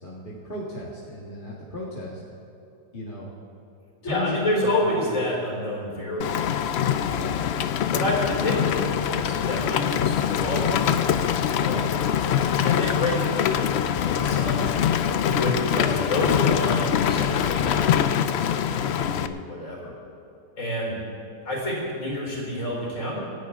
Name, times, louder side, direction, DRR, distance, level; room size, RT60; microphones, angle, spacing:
voice 1, 0.0-2.2 2.9-3.3 4.0-5.1 7.1-7.7 12.3-12.8, left 1 dB, 30° left, -6 dB, 2.0 m, -36 dB
voice 2, 4.0-6.4 7.0-7.4 7.8-14.6 15.1-19.9 20.6-20.9 21.4-23.2, left 1 dB, 50° left, -3 dB, 4.7 m, -29 dB
Rain, 6.2-19.3, left 9 dB, 80° left, 0.5 m, -24 dB
26.0 x 10.5 x 3.7 m, 2.8 s
omnidirectional pair, 1.7 m